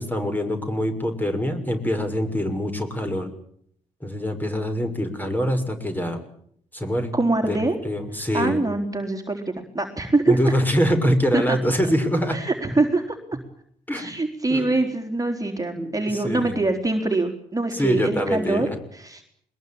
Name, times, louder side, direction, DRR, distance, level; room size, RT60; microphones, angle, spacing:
voice 1, 0.0-3.3 4.0-6.2 6.7-7.1 7.4-8.6 10.3-12.4 13.9-14.1 14.5-14.7 15.8-16.5 17.7-18.8, equal, 10° left, 6 dB, 6.4 m, -24 dB
voice 2, 7.1-7.8 8.3-10.5 11.3-11.6 12.3-13.2 13.9-19.2, right 2 dB, 20° right, 3 dB, 3.9 m, -24 dB
22.5 x 21.0 x 8.9 m, 0.66 s
hypercardioid pair, 50°, 17 cm